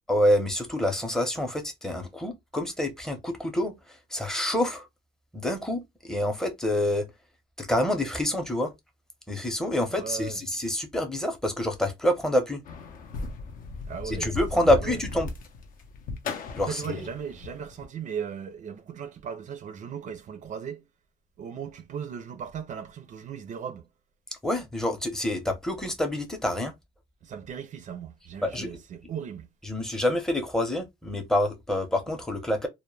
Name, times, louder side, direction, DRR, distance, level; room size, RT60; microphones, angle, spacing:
voice 1, 0.1-3.7 4.1-4.9 5.3-7.1 7.6-8.7 9.3-12.6 14.0-15.3 16.6-17.1 24.4-26.7 28.4-28.7 29.6-32.7, left 1 dB, 5° left, 0.7 m, -27 dB
voice 2, 9.9-10.4 13.9-15.0 16.7-20.8 21.4-23.9 27.2-29.5, right 7 dB, 45° right, 0.4 m, -37 dB
sound 1, 12.7-17.8, left 3 dB, 55° left, 0.6 m, -36 dB
2.1 x 2.1 x 3.1 m
cardioid pair, 110°, 17 cm